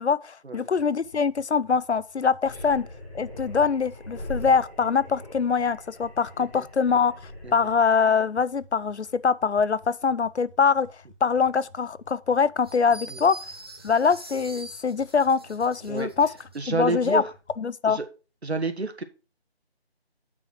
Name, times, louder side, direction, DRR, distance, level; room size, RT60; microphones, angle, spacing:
voice 1, 0.0-2.9 3.1-7.1 7.5-10.9 11.2-13.4 13.8-16.3 16.7-17.2 17.6-18.0, left 5 dB, 85° left, 0.7 m, -23 dB
sound 1, 0.8-17.6, left 1 dB, 30° left, 1.6 m, -55 dB
sound 2, 2.4-7.7, left 1 dB, 10° left, 1.9 m, -40 dB
sound 3, 12.6-16.6, right 1 dB, 25° right, 0.9 m, -45 dB
voice 2, 16.6-17.2 17.9-18.1 18.4-19.0, right 3 dB, 75° right, 1.8 m, -29 dB
8.6 x 6.3 x 4.5 m
figure-of-eight pair, 165°, 33 cm